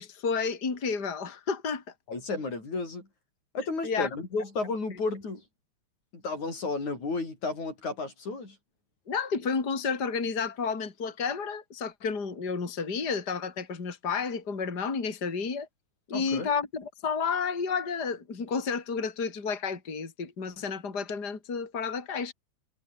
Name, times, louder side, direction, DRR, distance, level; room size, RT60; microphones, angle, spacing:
voice 1, 0.0-1.8 3.8-4.1 9.1-15.7 16.1-22.3, left 5 dB, 35° left, 3.7 m, -31 dB
voice 2, 2.1-3.1 3.5-5.4 6.1-8.6 16.1-16.5, left 3 dB, 75° left, 8.7 m, -32 dB
omnidirectional pair, 3.3 m